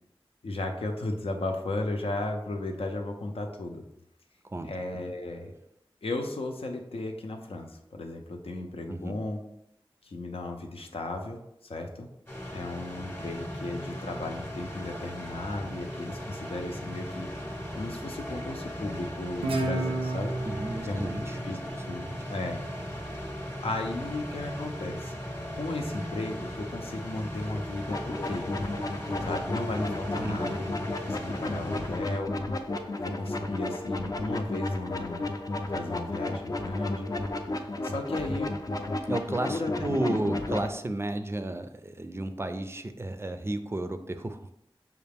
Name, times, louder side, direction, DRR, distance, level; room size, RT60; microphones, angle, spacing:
voice 1, 0.4-3.8 4.6-5.5 6.0-9.4 10.0-12.1 12.5-17.3 17.7-20.3 20.9-21.1 21.4-21.6 21.9-22.6 23.6-25.1 25.5-28.5 29.2-30.7 31.0-32.4 33.0-35.3 35.7-37.1 37.8-38.5 39.5-40.3, left 2 dB, 85° left, 3 dB, 0.6 m, -35 dB
voice 2, 8.9-9.2 20.4-21.4 22.0-22.1 30.2-30.6 39.1-44.5, right 1 dB, 25° right, 8 dB, 0.4 m, -33 dB
sound 1, 12.3-32.2, equal, 20° left, 0.8 m, -38 dB
Guitar, 19.4-22.7, right 2 dB, 90° right, 0.7 m, -32 dB
sound 2, 27.9-40.7, left 2 dB, 40° left, 0.4 m, -33 dB
5.5 x 2.4 x 3.4 m, 0.79 s
wide cardioid pair, 65°, 10 cm